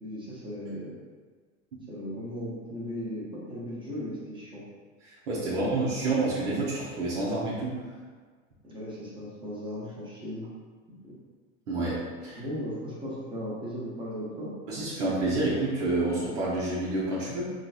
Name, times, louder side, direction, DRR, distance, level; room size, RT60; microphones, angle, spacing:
voice 1, 0.0-0.9 1.9-4.6 5.5-5.6 8.6-10.4 11.0-11.1 12.3-14.5, equal, 15° right, -6 dB, 0.9 m, -37 dB
voice 2, 5.1-7.8 11.7-12.4 14.7-17.5, right 2 dB, 65° right, -7 dB, 0.9 m, -28 dB
3.9 x 2.3 x 2.4 m, 1.5 s
hypercardioid pair, 110°, 39 cm